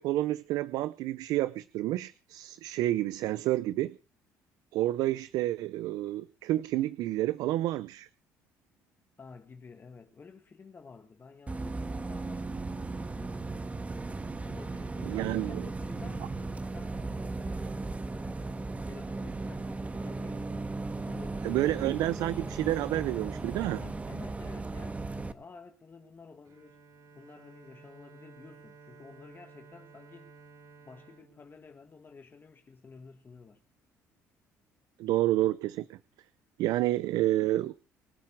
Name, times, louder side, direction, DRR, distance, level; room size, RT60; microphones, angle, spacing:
voice 1, 0.0-4.0 4.7-8.1 15.0-15.7 21.4-23.8 35.0-36.0 36.6-37.7, right 15 dB, 75° right, 0.6 m, -29 dB
voice 2, 9.2-13.4 14.4-17.1 17.4-18.4 18.8-20.7 21.0-22.2 23.8-26.8 27.2-30.3 30.8-33.6, left 4 dB, 35° left, 1.9 m, -51 dB
Bus, 11.5-25.3, right 3 dB, 20° right, 1.4 m, -36 dB
Bowed string instrument, 26.4-32.5, right 4 dB, 60° right, 4.2 m, -55 dB
24.5 x 8.5 x 4.7 m
supercardioid pair, 75°, 6 cm